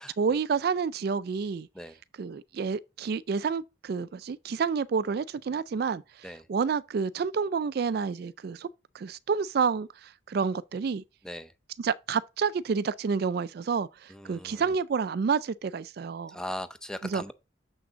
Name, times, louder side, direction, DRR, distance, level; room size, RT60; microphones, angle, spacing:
voice 1, 0.2-1.7 2.2-8.7 8.9-11.0 11.8-16.4 17.0-17.2, right 5 dB, 50° right, 0.3 m, -29 dB
voice 2, 14.1-14.6 16.3-17.3, equal, 5° left, 0.5 m, -39 dB
7.1 x 6.0 x 3.9 m
head